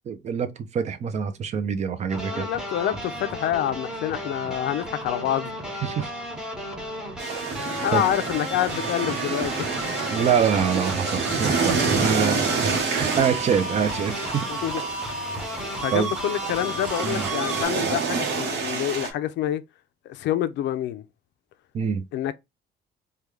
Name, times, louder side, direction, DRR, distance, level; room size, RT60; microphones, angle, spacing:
voice 1, 0.1-2.5 5.8-6.1 7.9-8.0 10.1-14.5 15.9-16.1 17.0-17.2 21.7-22.0, right 7 dB, 40° right, 0.5 m, -25 dB
sound 1, 2.1-17.7, equal, 5° right, 0.8 m, -33 dB
voice 2, 2.3-5.5 7.8-9.7 14.5-14.8 15.4-19.6 20.1-21.0 22.1-22.3, left 12 dB, 80° left, 0.5 m, -27 dB
sound 2, 7.2-19.1, right 5 dB, 70° right, 1.0 m, -28 dB
3.5 x 2.3 x 3.1 m
cardioid pair, 150°, 18 cm